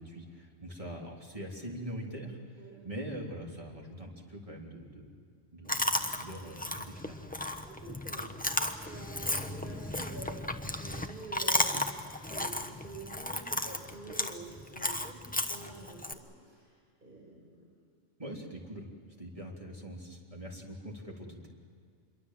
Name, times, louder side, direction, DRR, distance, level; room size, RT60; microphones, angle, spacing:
voice 1, 0.0-5.2 5.5-7.3 18.2-18.9 19.2-21.5, equal, 25° right, -2 dB, 3.5 m, -43 dB
Chewing mastication, 5.7-16.1, left 1 dB, 5° left, 0.9 m, -34 dB
voice 2, 7.6-11.8 12.2-16.7 17.0-17.7, right 2 dB, 40° right, -4 dB, 5.1 m, -47 dB
27.0 x 22.5 x 7.6 m, 2.2 s
omnidirectional pair, 1.3 m